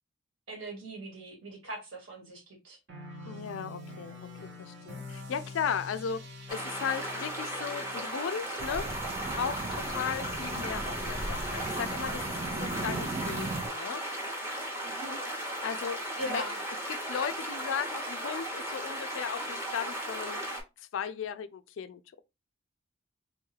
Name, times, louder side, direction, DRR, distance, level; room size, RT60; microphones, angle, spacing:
voice 1, 0.5-2.8 14.8-15.2 16.2-16.6, right 1 dB, 70° right, 1.4 m, -40 dB
sound 1, 2.9-9.1, left 1 dB, 55° right, 0.8 m, -45 dB
voice 2, 3.3-4.3 4.6-6.2 6.5-8.9 9.3-14.0 15.6-16.5 16.9-20.4 20.8-22.2, left 7 dB, 65° left, 0.3 m, -36 dB
sound 2, 6.5-20.6, equal, 10° right, 0.7 m, -36 dB
sound 3, 8.6-13.7, right 3 dB, 30° right, 0.3 m, -37 dB
3.5 x 2.3 x 3.1 m
head